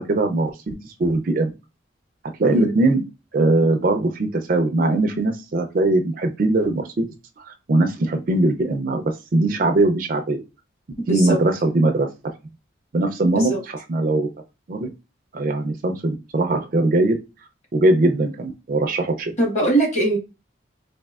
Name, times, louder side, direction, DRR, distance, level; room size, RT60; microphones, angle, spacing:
voice 1, 0.1-1.5 2.4-3.0 3.3-7.0 7.4-10.4 11.1-12.1 12.9-13.5 13.9-14.3 14.7-14.9 15.3-17.2 17.7-19.3, right 2 dB, 45° right, 6 dB, 0.4 m, -20 dB
voice 2, 2.5-2.8 11.1-11.4 13.3-13.6 19.4-20.2, right 2 dB, 35° left, 1 dB, 1.2 m, -21 dB
4.2 x 2.7 x 2.3 m, 0.28 s
head